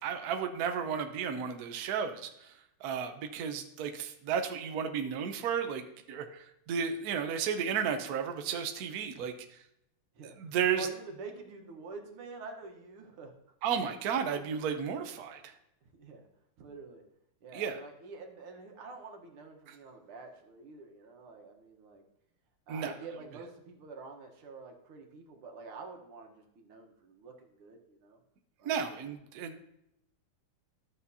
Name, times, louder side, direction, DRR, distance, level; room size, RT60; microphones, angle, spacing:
voice 1, 0.0-2.5 2.8-9.3 10.4-10.9 13.6-15.5 17.5-17.8 19.7-19.8 22.7-22.9 28.6-29.6, right 7 dB, 65° right, 6 dB, 1.0 m, -33 dB
voice 2, 10.8-13.3 16.0-16.3 16.6-17.0 17.4-22.0 22.7-28.2 28.6-28.8, right 4 dB, 80° right, 3 dB, 2.0 m, -47 dB
12.5 x 7.1 x 2.7 m, 0.80 s
omnidirectional pair, 2.4 m